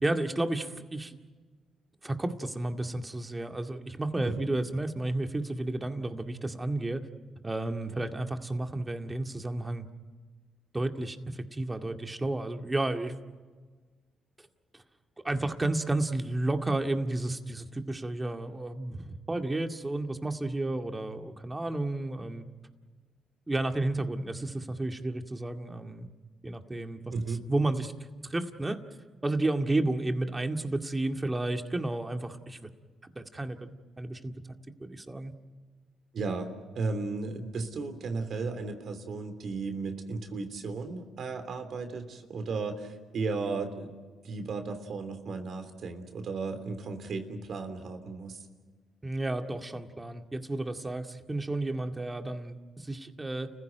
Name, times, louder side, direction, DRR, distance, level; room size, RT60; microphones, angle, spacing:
voice 1, 0.0-1.2 2.0-7.0 7.4-9.9 10.7-13.1 15.2-22.4 23.5-26.1 26.4-27.1 27.5-27.9 28.3-28.8 29.2-32.7 33.0-34.3 34.8-35.3 49.0-53.5, right 2 dB, 20° right, 5 dB, 2.1 m, -32 dB
voice 2, 27.1-27.4 36.1-44.0 44.2-48.4, right 4 dB, 60° right, 8 dB, 3.2 m, -35 dB
30.0 x 15.5 x 9.3 m, 1.4 s
supercardioid pair, 60°, 0 cm